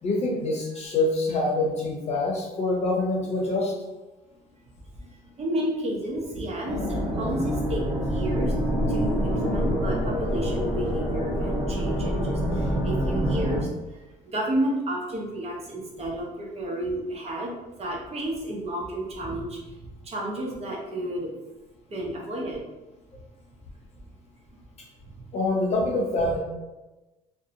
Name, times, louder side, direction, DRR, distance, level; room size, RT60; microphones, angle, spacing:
voice 1, 0.0-3.7 25.3-26.4, left 2 dB, 40° left, -2 dB, 0.7 m, -25 dB
voice 2, 5.0-8.5 8.9-14.0 14.3-17.5 17.8-19.6 20.0-21.3 21.9-22.6, right 1 dB, 40° right, -2 dB, 0.7 m, -31 dB
sound 1, 6.7-13.6, equal, ahead, 0.7 m, -26 dB
2.6 x 2.1 x 2.7 m, 1.1 s
cardioid pair, 110°, 17 cm